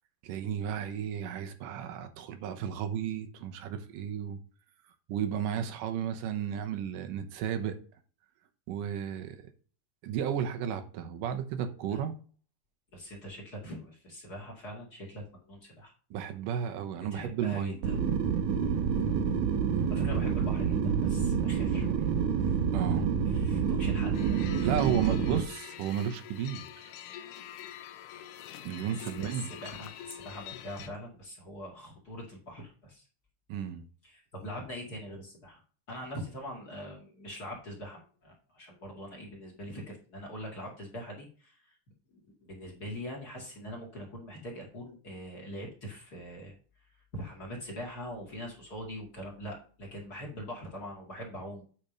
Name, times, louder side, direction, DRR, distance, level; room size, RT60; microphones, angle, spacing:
voice 1, 0.2-4.4 5.1-7.8 8.7-9.5 10.0-12.1 16.1-17.8 22.7-23.1 24.6-26.9 28.6-29.5 33.5-33.9, right 9 dB, 85° right, 2.6 m, -33 dB
voice 2, 12.9-15.9 17.1-18.0 18.5-18.8 19.8-22.1 22.4-22.6 23.3-24.5 29.0-33.0 34.0-35.6 35.9-41.8 42.1-46.6 47.1-51.6, equal, 35° left, 2.3 m, -43 dB
sound 1, 17.8-25.4, right 6 dB, 70° right, 2.2 m, -28 dB
sound 2, 24.1-30.9, left 10 dB, 90° left, 2.3 m, -45 dB
8.7 x 4.3 x 5.2 m
omnidirectional pair, 3.7 m